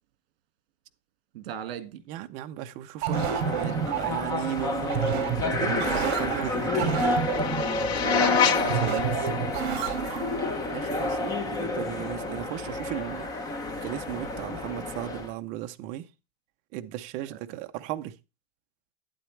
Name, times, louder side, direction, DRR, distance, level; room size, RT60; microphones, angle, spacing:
voice 1, 1.3-2.0 8.0-9.3 17.2-17.4, right 10 dB, 65° right, 1.9 m, -37 dB
voice 2, 2.1-7.2 10.7-13.6 13.8-16.1 16.7-18.1, right 13 dB, 25° right, 0.5 m, -36 dB
sound 1, 3.0-10.5, right 9 dB, 50° right, 2.4 m, -30 dB
sound 2, 3.1-15.3, left 2 dB, 10° left, 0.7 m, -30 dB
sound 3, 6.2-11.2, left 10 dB, 80° left, 1.2 m, -31 dB
11.5 x 9.2 x 3.2 m
supercardioid pair, 175°, 31 cm